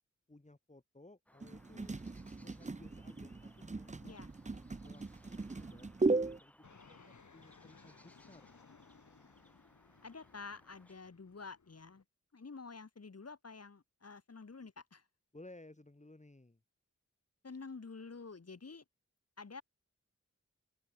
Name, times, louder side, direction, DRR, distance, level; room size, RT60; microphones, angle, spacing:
voice 1, 0.3-2.0 2.4-4.2 4.8-5.1 5.4-5.9 6.4-8.6 15.3-16.6, left 2 dB, 25° left, 4.9 m, -58 dB
sound 1, 1.3-11.0, equal, 5° left, 5.6 m, -66 dB
sound 2, 1.4-6.4, right 3 dB, 25° right, 0.8 m, -37 dB
Fixed-wing aircraft airplane, 6.6-12.0, left 5 dB, 80° left, 5.3 m, -62 dB
voice 2, 10.0-12.0 12.3-15.0 17.4-18.8 19.4-19.6, left 4 dB, 55° left, 2.7 m, -49 dB
open air
wide cardioid pair, 70°, 29 cm